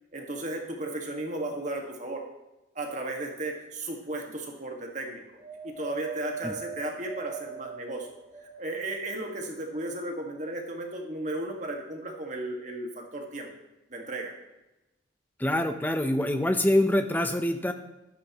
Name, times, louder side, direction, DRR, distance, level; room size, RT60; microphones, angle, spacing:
voice 1, 0.1-2.2 2.7-5.2 5.6-8.1 8.4-13.5 13.9-14.3, right 2 dB, 40° right, 1 dB, 1.7 m, -35 dB
Wind, 5.4-8.9 9.5-10.5 11.3-11.4, right 5 dB, 15° right, 3.7 m, -42 dB
voice 2, 15.4-17.7, left 1 dB, 10° left, 7 dB, 0.7 m, -25 dB
13.5 x 12.0 x 3.0 m, 0.97 s
head